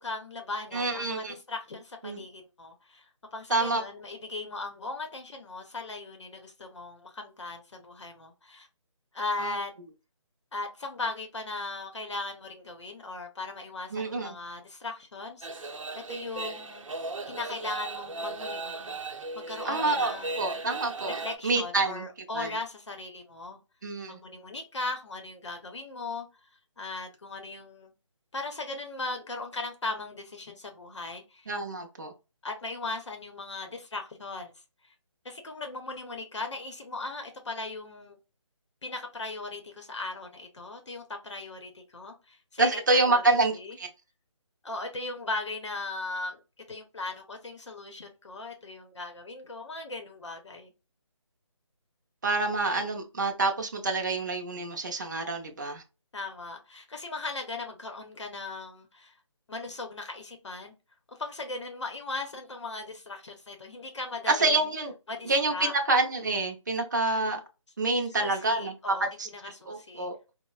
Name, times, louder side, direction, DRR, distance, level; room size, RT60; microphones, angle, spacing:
voice 1, 0.0-3.1 3.3-8.7 9.1-9.7 10.5-16.9 17.3-19.0 19.3-20.6 21.2-23.6 24.1-26.3 26.8-27.9 28.3-31.5 32.4-34.5 35.2-38.2 38.8-43.8 44.6-46.4 46.7-50.7 56.1-59.1 59.5-60.7 61.1-64.6 65.1-65.7 68.1-70.1, left 3 dB, 60° left, 0.7 m, -38 dB
voice 2, 0.7-1.3 2.0-2.2 3.5-3.8 9.4-9.6 13.9-14.4 19.6-22.1 22.3-22.5 23.8-24.2 31.5-32.1 42.6-43.9 52.2-55.8 64.3-64.9 65.3-67.4 67.8-69.3 69.7-70.1, right 2 dB, 35° right, 0.5 m, -27 dB
sound 1, 15.4-21.4, right 3 dB, 80° right, 0.6 m, -37 dB
4.2 x 2.0 x 2.3 m
hypercardioid pair, 175°, 17 cm